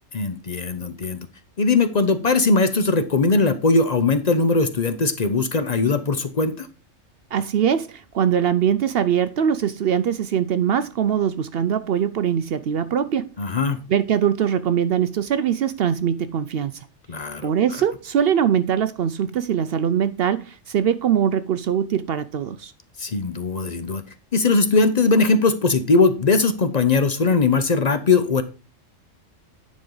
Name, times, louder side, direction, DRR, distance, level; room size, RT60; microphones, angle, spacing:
voice 1, 0.1-1.3 1.6-6.7 13.4-13.8 17.1-17.5 23.0-24.0 24.3-28.4, left 3 dB, 40° left, 0.6 m, -20 dB
voice 2, 7.3-13.3 13.9-16.9 17.4-22.7, right 8 dB, 65° right, 0.7 m, -22 dB
9.7 x 5.2 x 3.8 m
omnidirectional pair, 1.3 m